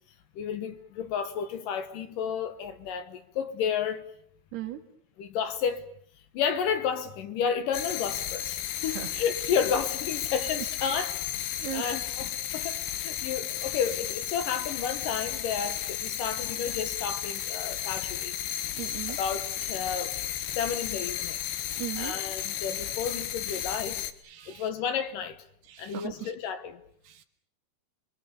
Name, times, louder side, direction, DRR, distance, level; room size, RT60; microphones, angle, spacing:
voice 1, 0.4-4.0 5.2-5.8 6.3-11.2 11.7-12.3 12.5-18.3 19.2-20.2 20.5-21.4 22.0-24.0 24.4-25.4 25.8-26.8, left 7 dB, 65° left, 2.6 m, -31 dB
voice 2, 4.5-4.8 8.9-9.1 10.6-11.1 11.6-11.9 18.8-19.2 21.8-22.2 23.4-23.7 24.3-24.7 25.7-26.3 27.1-27.3, right 11 dB, 85° right, 3.9 m, -38 dB
sound 1, 7.7-24.1, left 11 dB, 90° left, 3.5 m, -33 dB
30.0 x 23.5 x 6.9 m
omnidirectional pair, 4.6 m